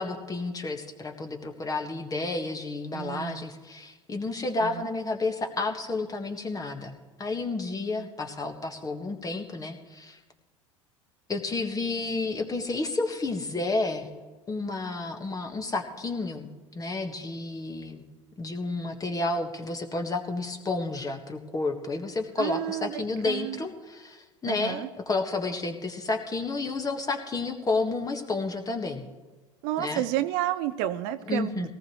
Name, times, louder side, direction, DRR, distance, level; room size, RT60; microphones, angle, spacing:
voice 1, 0.0-6.9 7.2-10.2 11.3-14.1 14.5-18.0 18.4-29.0 29.8-30.0 31.3-31.7, left 3 dB, 25° left, 5 dB, 1.6 m, -31 dB
voice 2, 2.9-3.5 4.6-4.9 8.0-8.1 22.4-23.6 24.5-24.9 29.6-31.7, right 13 dB, 60° right, 12 dB, 0.6 m, -31 dB
18.0 x 15.0 x 3.2 m, 1.2 s
figure-of-eight pair, 75°, 16 cm